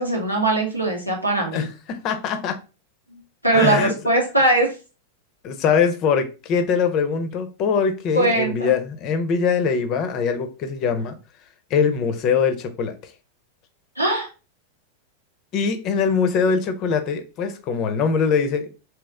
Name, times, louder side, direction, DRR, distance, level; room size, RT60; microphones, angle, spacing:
voice 1, 0.0-1.7 3.1-3.2 3.4-4.7 8.1-8.7 14.0-14.3, right 2 dB, 90° right, -1 dB, 1.1 m, -20 dB
voice 2, 2.0-2.6 3.5-3.9 5.4-11.2 11.7-12.9 15.5-18.9, left 6 dB, 40° left, 8 dB, 0.6 m, -22 dB
3.1 x 3.1 x 3.4 m, 0.31 s
figure-of-eight pair, 90°, 0 cm